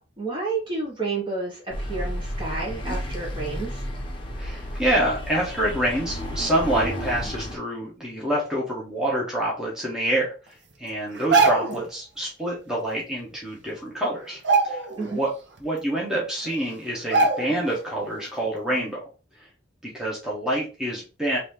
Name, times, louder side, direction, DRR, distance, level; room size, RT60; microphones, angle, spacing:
voice 1, 0.2-3.8 15.0-15.2, right 3 dB, 25° right, -3 dB, 1.3 m, -30 dB
sound 1, 1.7-7.6, equal, 30° left, 0.8 m, -32 dB
voice 2, 4.4-10.3 10.8-14.4 14.6-15.3 15.6-19.0 19.4-19.5 19.9-21.4, right 1 dB, 5° right, -5 dB, 1.1 m, -27 dB
sound 2, 11.1-11.9 13.3-13.4 13.7-14.0 14.3-15.2 15.6-15.7 16.4-16.5 17.1-17.7 18.1-18.3, right 4 dB, 65° right, 0.8 m, -22 dB
4.0 x 2.7 x 3.3 m, 0.32 s
head